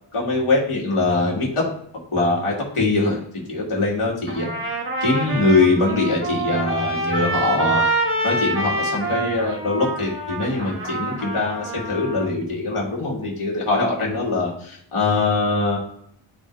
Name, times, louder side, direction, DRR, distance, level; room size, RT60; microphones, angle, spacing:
voice 1, 0.1-1.6 2.1-3.2 3.5-4.6 5.0-7.8 8.2-15.8, left 3 dB, 90° left, -3 dB, 2.5 m, -22 dB
Trumpet, 4.3-12.3, right 2 dB, 25° right, 1.6 m, -26 dB
11.5 x 4.9 x 2.7 m, 0.68 s
wide cardioid pair, 80°, 49 cm